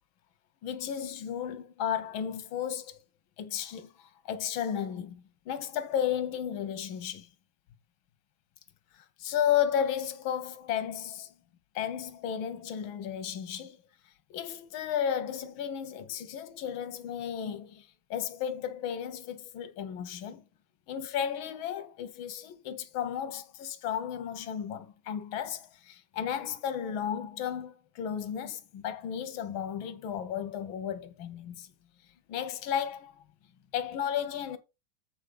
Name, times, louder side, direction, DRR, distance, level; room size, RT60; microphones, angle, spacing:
voice 1, 0.6-3.0 3.4-7.3 9.2-11.3 11.8-13.8 14.3-20.4 20.9-31.7 32.3-33.1 33.7-34.6, left 9 dB, 85° left, 1.7 m, -33 dB
8.1 x 4.2 x 5.1 m
omnidirectional pair, 2.1 m